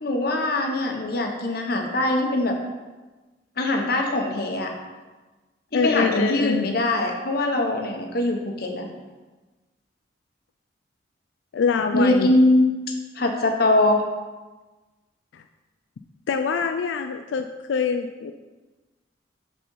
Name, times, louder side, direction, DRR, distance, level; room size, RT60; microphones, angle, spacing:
voice 1, 0.0-2.5 3.6-4.7 5.7-8.9 11.9-12.7 13.2-14.0, left 1 dB, 55° left, 2 dB, 1.0 m, -22 dB
voice 2, 5.7-6.7 11.5-12.3 15.3-15.4 16.3-18.3, left 5 dB, 85° left, 6 dB, 0.4 m, -24 dB
7.2 x 4.0 x 5.6 m, 1.2 s
head